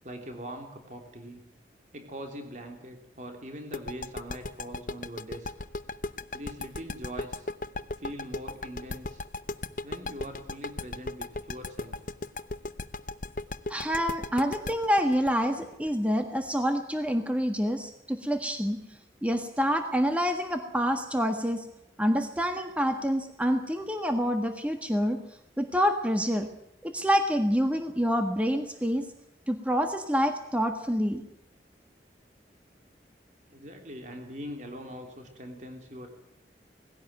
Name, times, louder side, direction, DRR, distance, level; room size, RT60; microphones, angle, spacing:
voice 1, 0.0-1.4 1.9-5.5 6.3-7.5 8.0-9.2 9.8-12.0 33.5-36.2, equal, 45° right, 4 dB, 3.2 m, -42 dB
sound 1, 3.7-16.5, left 2 dB, 50° left, 0.7 m, -36 dB
voice 2, 13.7-18.8 19.2-21.6 22.0-25.2 25.6-26.5 26.8-29.0 29.5-31.2, equal, 10° right, 5 dB, 1.5 m, -27 dB
20.0 x 16.5 x 9.0 m, 0.83 s
head